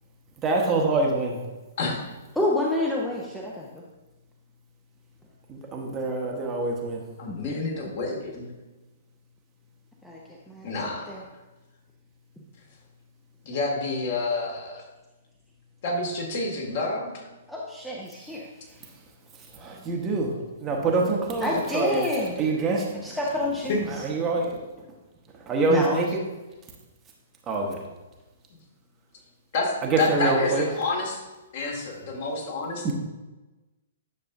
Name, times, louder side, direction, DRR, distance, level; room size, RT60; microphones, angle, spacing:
voice 1, 0.4-1.4 5.5-7.0 19.6-20.3 20.6-22.1 22.4-22.8 23.9-24.6 25.5-26.1 27.5-27.8 29.8-30.7 32.8-32.9, right 3 dB, 20° right, 0 dB, 1.1 m, -25 dB
voice 2, 2.4-3.7 7.3-7.7 8.0-8.1 10.0-10.2 10.5-10.7 11.1-11.2 17.5-18.4 21.4-22.4 23.0-23.9 25.7-26.0, left 2 dB, 5° left, -4 dB, 0.9 m, -28 dB
voice 3, 7.2-8.5 10.6-11.1 13.4-14.8 15.8-17.1 23.7-23.8 29.5-29.7 30.0-31.2 31.5-32.9, left 3 dB, 45° left, -2 dB, 2.3 m, -28 dB
9.8 x 6.8 x 2.7 m, 1.1 s
figure-of-eight pair, 115°, 0 cm